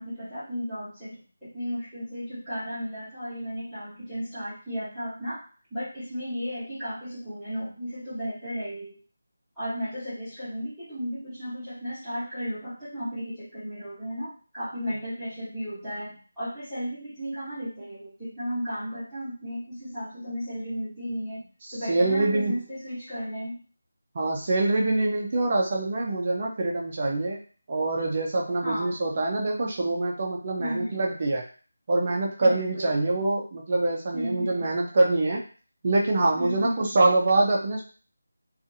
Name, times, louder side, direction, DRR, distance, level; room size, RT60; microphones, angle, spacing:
voice 1, 0.0-5.4 5.7-9.0 9.5-21.4 21.7-23.6 28.6-29.0 30.6-31.0 32.4-32.9 34.1-34.7 36.4-36.9, equal, ahead, -20 dB, 1.0 m, -34 dB
voice 2, 21.6-22.5 24.1-27.4 27.7-31.4 31.9-35.4 35.8-37.8, right 2 dB, 30° right, -1 dB, 0.4 m, -25 dB
2.6 x 2.3 x 2.6 m, 0.38 s
figure-of-eight pair, 175°, 0 cm